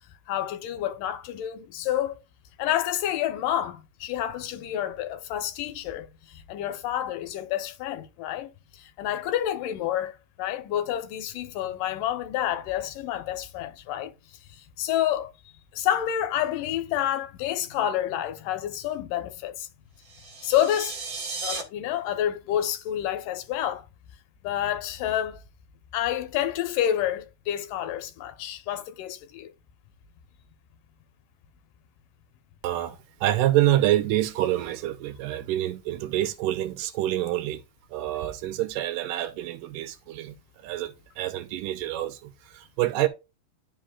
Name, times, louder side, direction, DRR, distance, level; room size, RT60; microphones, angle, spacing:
voice 1, 0.3-2.2 2.6-14.1 14.5-15.3 15.7-19.7 20.4-21.0 21.4-23.8 24.4-25.4 25.9-29.5, left 11 dB, 80° left, 2.6 m, -29 dB
sound 1, 20.0-21.6, right 4 dB, 50° right, 1.0 m, -35 dB
voice 2, 32.6-37.6 37.9-40.3 40.6-43.1, right 14 dB, 90° right, 2.3 m, -27 dB
11.5 x 5.5 x 2.3 m
omnidirectional pair, 3.8 m